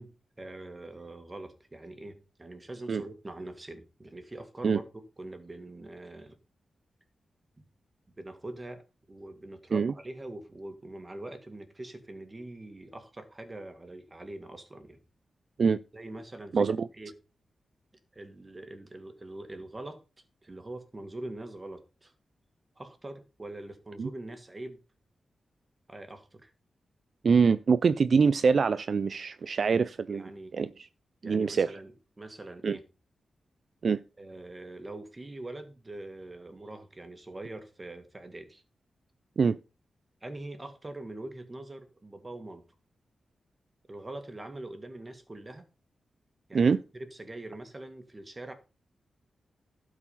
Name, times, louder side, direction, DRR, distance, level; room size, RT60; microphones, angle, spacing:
voice 1, 0.0-4.8 5.2-6.4 7.6-7.7 8.2-8.8 9.1-15.0 15.9-16.7 17.0-17.1 18.1-20.0 20.4-22.1 22.8-24.8 25.9-26.5 30.1-30.5 31.2-31.9 32.2-32.8 34.2-38.6 40.2-42.6 43.9-45.6 46.5-48.5, right 2 dB, 25° right, 2.0 m, -43 dB
voice 2, 16.5-16.9 24.0-24.1 27.2-30.2 30.5-30.9 31.2-31.8 32.6-32.8 33.8-34.0 39.4-39.6 46.5-46.8, right 5 dB, 60° right, 0.4 m, -24 dB
12.0 x 4.8 x 5.6 m
wide cardioid pair, 100°, 0 cm